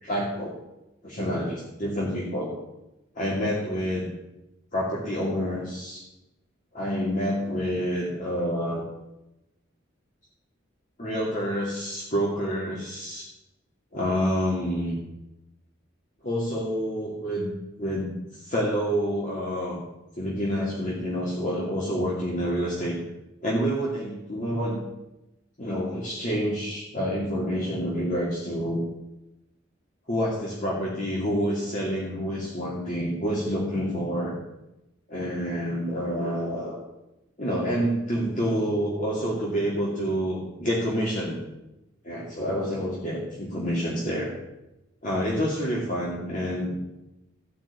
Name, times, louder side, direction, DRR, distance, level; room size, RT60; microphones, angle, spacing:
voice 1, 0.0-0.6 1.0-2.5 3.1-4.1 4.7-6.0 6.7-8.8 11.0-13.2 13.9-15.0 16.2-19.8 20.2-23.0 23.4-24.8 25.6-28.8 30.1-34.3 35.1-36.8 37.4-41.4 42.0-44.3 45.0-46.7, equal, 40° left, -4 dB, 2.6 m, -28 dB
15.0 x 6.0 x 8.5 m, 0.94 s
head